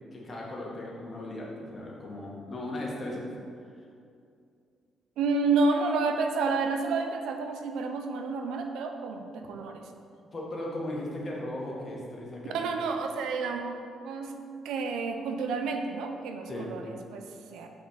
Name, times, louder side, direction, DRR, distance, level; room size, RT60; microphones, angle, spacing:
voice 1, 0.1-3.3 10.3-12.7 16.5-16.7, left 1 dB, 35° left, -3 dB, 1.8 m, -37 dB
voice 2, 5.2-9.9 12.5-14.3 14.6-17.7, right 4 dB, 85° right, 5 dB, 0.6 m, -30 dB
5.8 x 4.4 x 6.4 m, 2.4 s
cardioid pair, 90°, 0 cm